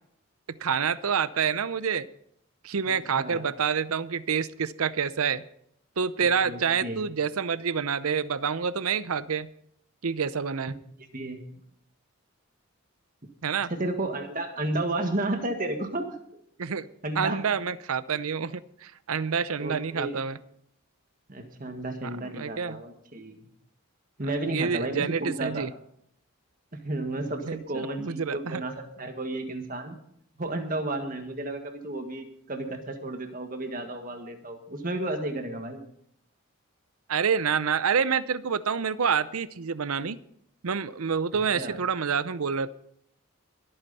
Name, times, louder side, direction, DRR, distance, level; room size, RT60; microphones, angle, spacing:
voice 1, 0.5-2.1 2.6-5.4 6.0-9.5 10.0-10.7 13.4-13.7 16.6-16.9 17.2-20.4 22.0-22.8 24.5-25.7 27.5-28.6 37.1-40.2 40.6-42.7, right 6 dB, 80° right, 16 dB, 0.6 m, -28 dB
voice 2, 2.9-3.5 6.4-7.1 10.7-10.8 11.1-11.5 13.7-16.4 17.0-17.5 19.6-20.2 21.3-23.5 24.2-25.7 26.7-30.0 30.4-35.8 41.6-41.8, right 2 dB, 40° right, 5 dB, 1.7 m, -32 dB
22.5 x 8.8 x 4.2 m, 0.70 s
head